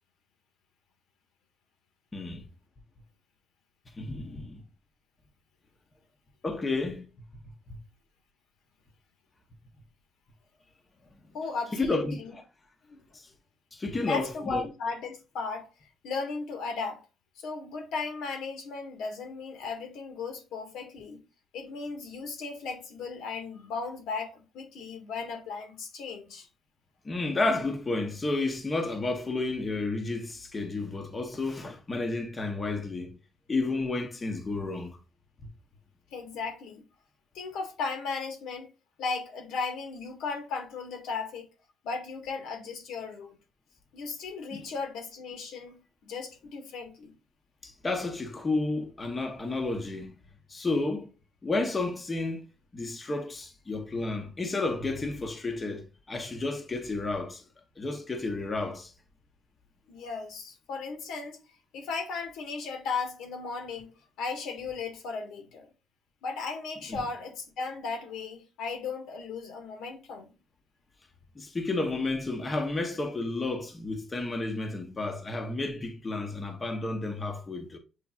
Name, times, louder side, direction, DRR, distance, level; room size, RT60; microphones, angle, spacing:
voice 1, 2.1-2.4 3.9-4.6 6.4-7.1 7.7-7.8 11.7-12.4 13.1-13.3 13.7-14.7 27.0-33.2 33.5-35.0 44.5-44.6 47.6-50.2 50.5-51.1 51.4-52.5 52.7-57.4 57.8-58.9 66.9-67.0 71.3-77.8, left 3 dB, 20° left, 0.7 m, -31 dB
voice 2, 11.3-12.3 12.9-13.0 14.0-15.7 16.0-17.0 17.4-21.2 21.5-26.5 36.1-36.8 37.3-38.7 39.0-41.5 41.8-43.4 43.9-45.8 46.0-47.1 59.9-61.4 61.7-65.7 66.2-70.3, left 4 dB, 85° left, 1.3 m, -36 dB
6.9 x 3.2 x 2.3 m
cardioid pair, 180°, 0 cm